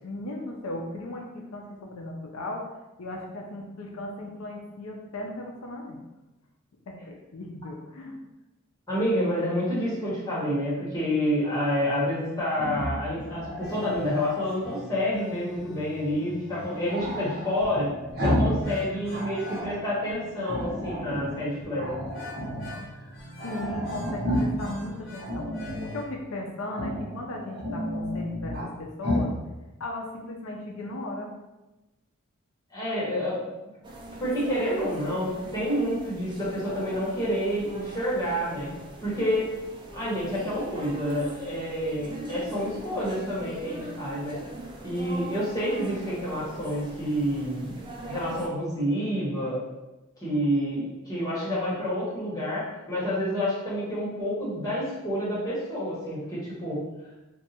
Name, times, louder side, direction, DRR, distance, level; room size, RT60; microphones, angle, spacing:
voice 1, 0.0-2.7 3.0-6.0 6.9-8.2 23.4-29.3 29.8-31.3, left 1 dB, 80° left, 0 dB, 0.5 m, -37 dB
voice 2, 8.9-17.9 18.2-22.0 32.7-33.4 34.2-38.7 39.0-39.5 39.9-44.4 44.8-47.7 48.0-49.6 50.2-56.8, equal, 15° left, -8 dB, 1.2 m, -28 dB
Growling, 12.5-14.5 16.9-18.6 18.9-19.8 20.4-21.3 21.8-22.8 23.1-23.2 23.4-24.7 25.2-26.0 26.7-27.1 27.5-28.7 29.0-29.3, equal, 45° right, 0.8 m, -31 dB
sound 1, 13.2-26.0, equal, 55° left, 1.0 m, -45 dB
sound 2, 33.8-48.5, right 1 dB, 20° right, 0.3 m, -41 dB
2.6 x 2.4 x 4.1 m, 1.0 s
head